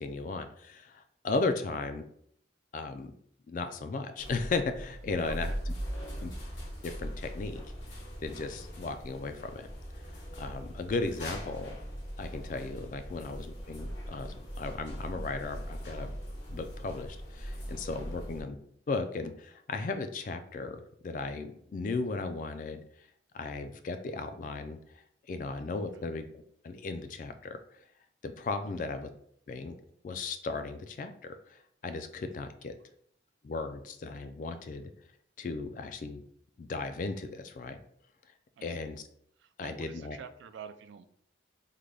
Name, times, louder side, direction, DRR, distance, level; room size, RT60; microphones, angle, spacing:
voice 1, 0.0-2.0 2.7-3.1 3.5-5.7 6.2-6.3 6.8-7.6 8.2-9.7 10.3-11.8 12.2-16.2 16.5-18.6 18.9-22.8 23.3-24.8 25.3-27.6 28.2-29.1 29.5-29.7 30.0-32.8 33.4-34.9 35.4-36.2 36.6-37.8 38.6-39.1 39.6-40.2, left 3 dB, 45° left, 8 dB, 0.3 m, -36 dB
sound 1, 4.2-18.4, equal, 80° left, 1.2 m, -40 dB
voice 2, 5.3-5.6 5.9-6.3 25.9-26.0 28.8-28.9 38.6-38.8 39.4-41.1, right 6 dB, 80° right, 11 dB, 0.3 m, -48 dB
3.7 x 2.2 x 3.2 m, 0.65 s
head